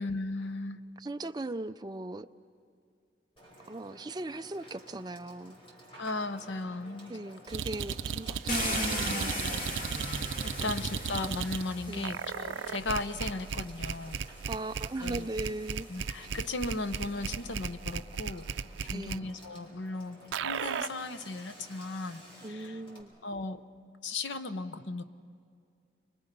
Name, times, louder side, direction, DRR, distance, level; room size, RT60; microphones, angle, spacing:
voice 1, 0.0-0.8 6.0-7.1 10.0-14.2 15.0-15.3 15.9-18.5 18.8-22.8 23.2-23.6 24.0-25.0, left 2 dB, 75° left, 11 dB, 0.9 m, -36 dB
voice 2, 1.0-2.3 3.7-5.6 7.1-9.3 10.6-10.7 11.9-12.1 14.5-15.9 16.3-16.4 18.9-19.3 22.4-23.1, right 2 dB, 20° right, 9 dB, 0.5 m, -39 dB
Water / Water tap faucet / Sink (filling or washing), 3.4-23.0, equal, 30° left, 5.0 m, -54 dB
sound 1, 7.5-11.6 12.0-19.2 20.3-20.9, right 6 dB, 85° right, 0.5 m, -35 dB
Car, 8.5-12.6 13.5-13.6 14.2-17.5, equal, 45° left, 2.8 m, -37 dB
29.5 x 24.0 x 5.4 m, 2.4 s
head